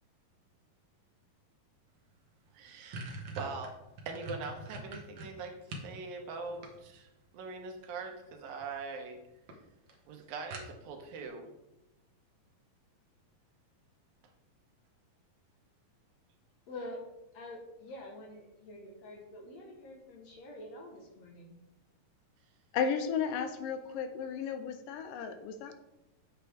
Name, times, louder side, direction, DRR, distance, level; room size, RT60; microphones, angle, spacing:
sound 1, 2.1-2.2 2.5-5.9 6.3-7.2 8.3-8.7 9.1-9.2 9.5-9.6 9.9-10.0 10.5-11.1, right 2 dB, 60° right, 1.2 m, -43 dB
voice 1, 2.5-3.1 3.4-3.8 4.1-9.2 10.1-11.5, right 4 dB, 85° right, 3 dB, 2.9 m, -42 dB
voice 2, 16.7-17.0 17.3-21.6, left 1 dB, 60° left, 1 dB, 2.0 m, -46 dB
voice 3, 22.7-25.7, left 6 dB, 80° left, 8 dB, 2.2 m, -34 dB
8.2 x 7.8 x 3.5 m, 0.91 s
omnidirectional pair, 4.0 m